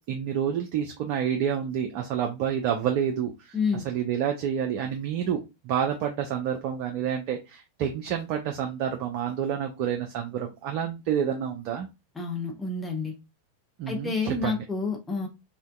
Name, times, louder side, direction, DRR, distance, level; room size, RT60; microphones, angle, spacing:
voice 1, 0.1-11.9 13.8-14.6, right 8 dB, 45° right, 3 dB, 0.4 m, -29 dB
voice 2, 3.5-3.8 12.2-13.2 13.9-15.3, left 4 dB, 10° left, 0 dB, 0.6 m, -29 dB
2.5 x 2.1 x 2.2 m, 0.25 s
figure-of-eight pair, 90°, 0 cm